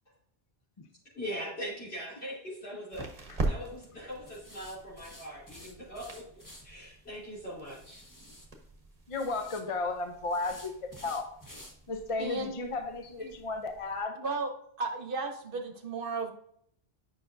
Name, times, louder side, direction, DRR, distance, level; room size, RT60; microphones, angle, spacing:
voice 1, 1.1-6.2 6.6-8.0, equal, 70° left, -9 dB, 3.4 m, -41 dB
sound 1, 1.6-14.0, right 2 dB, 35° right, 1.2 m, -43 dB
sound 2, 2.9-3.2 4.3-6.6 7.7-8.5 9.1-9.6 10.3-11.7 12.1-12.2 12.7-12.8 13.1-13.2, left 1 dB, 20° left, 1.0 m, -51 dB
voice 2, 9.1-11.3 11.9-14.2, left 3 dB, 35° left, 6 dB, 0.6 m, -34 dB
voice 3, 12.2-12.5 13.2-13.3 14.1-14.5 14.8-16.3, right 3 dB, 55° right, 5 dB, 1.1 m, -34 dB
9.2 x 5.7 x 2.6 m, 0.68 s
omnidirectional pair, 1.1 m